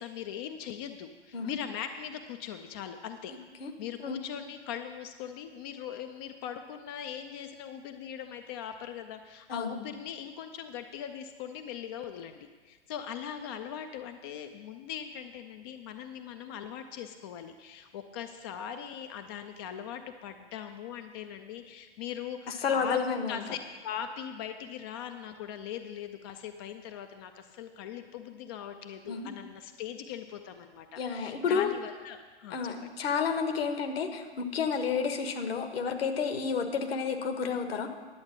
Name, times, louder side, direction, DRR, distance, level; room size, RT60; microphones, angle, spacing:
voice 1, 0.0-3.3 3.8-32.7, left 9 dB, 25° left, 7 dB, 0.4 m, -40 dB
voice 2, 3.3-3.7 4.0-4.2 9.5-9.8 22.6-23.4 29.1-29.3 31.0-31.7 32.5-37.9, left 6 dB, 60° left, 6 dB, 1.3 m, -31 dB
11.0 x 7.9 x 5.9 m, 1.4 s
figure-of-eight pair, 110°, 34 cm